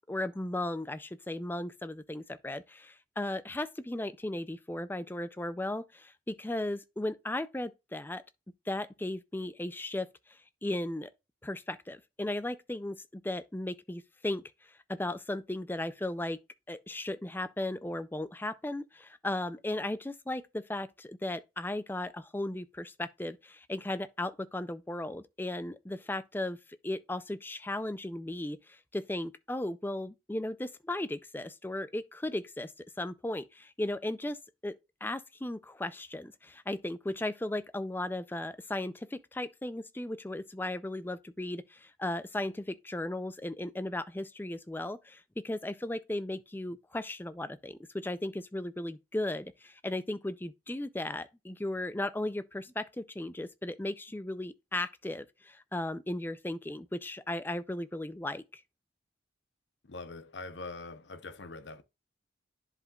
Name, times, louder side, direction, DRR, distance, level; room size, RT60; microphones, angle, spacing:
voice 1, 0.0-8.2 8.7-11.1 11.4-14.4 15.0-16.4 16.7-26.6 26.8-32.7 33.0-34.7 35.0-58.6, left 1 dB, 10° left, 0.4 m, -36 dB
voice 2, 59.8-61.8, left 3 dB, 65° left, 0.8 m, -43 dB
10.5 x 5.0 x 2.4 m
head